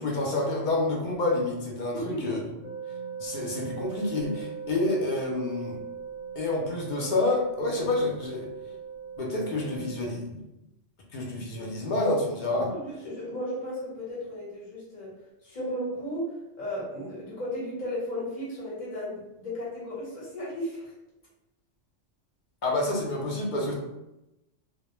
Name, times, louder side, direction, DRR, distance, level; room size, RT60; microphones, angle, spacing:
voice 1, 0.0-2.4 3.2-5.8 6.4-8.5 9.2-10.4 11.1-12.7 22.6-23.7, left 2 dB, 60° left, -2 dB, 0.5 m, -28 dB
voice 2, 1.9-2.4 12.7-15.2 15.4-20.9, equal, 40° left, -6 dB, 1.0 m, -35 dB
sound 1, 2.6-10.0, right 7 dB, 55° right, 0.5 m, -39 dB
2.3 x 2.0 x 2.9 m, 0.91 s
omnidirectional pair, 1.3 m